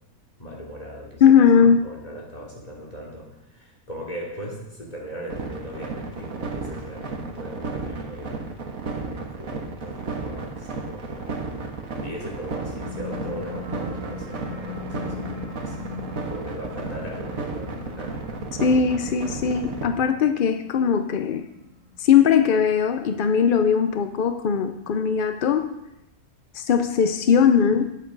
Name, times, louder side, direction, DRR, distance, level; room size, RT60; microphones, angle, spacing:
voice 1, 0.4-1.4 1.8-8.4 8.9-11.3 12.0-15.9 16.3-18.4, equal, 25° left, -3 dB, 2.9 m, -38 dB
voice 2, 1.2-1.9 18.6-21.5 22.0-25.7 26.5-27.9, left 7 dB, 65° left, 8 dB, 0.5 m, -19 dB
sound 1, 5.3-19.8, right 4 dB, 65° right, 1.8 m, -33 dB
sound 2, 12.5-23.4, left 6 dB, 35° right, 4.0 m, -40 dB
12.0 x 8.3 x 5.3 m, 0.86 s
omnidirectional pair, 1.6 m